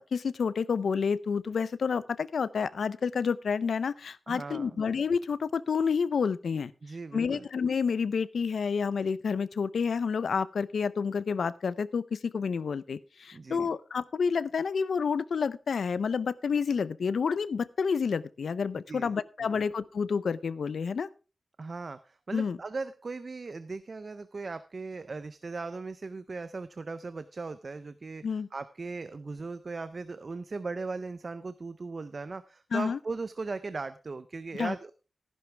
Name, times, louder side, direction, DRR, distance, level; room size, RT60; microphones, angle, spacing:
voice 1, 0.0-6.7 7.1-21.1 22.3-22.6 28.2-28.5 32.7-33.0 34.6-34.7, left 6 dB, 90° left, 18 dB, 0.5 m, -29 dB
voice 2, 4.3-4.8 6.8-7.5 13.3-13.7 18.9-19.1 19.5-19.6 21.6-34.9, right 3 dB, 45° right, 13 dB, 0.5 m, -38 dB
14.0 x 11.0 x 3.3 m, 0.33 s
wide cardioid pair, 145°, 0 cm